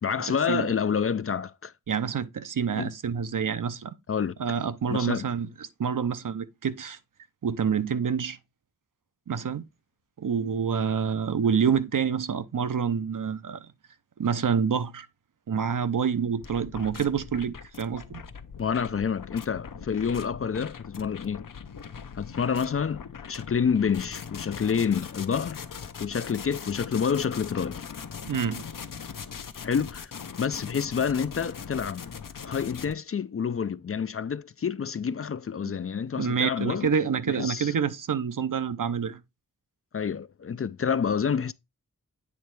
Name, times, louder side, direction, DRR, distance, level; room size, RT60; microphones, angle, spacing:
voice 1, 0.0-1.7 2.8-2.9 4.1-4.4 4.9-5.3 18.6-21.4 22.1-25.6 26.0-27.8 29.6-30.1 30.4-32.1 32.4-36.9 37.3-37.7 39.9-41.5, left 6 dB, 40° left, 0.4 m, -28 dB
voice 2, 1.9-3.9 4.4-7.0 7.4-8.4 9.3-9.6 10.2-13.7 14.2-15.1 15.5-18.2 28.2-28.6 35.7-35.8 36.2-39.2, right 7 dB, 65° right, 0.7 m, -27 dB
sound 1, 16.4-32.9, left 6 dB, 70° left, 0.8 m, -41 dB
8.5 x 3.1 x 4.6 m
wide cardioid pair, 60°, 34 cm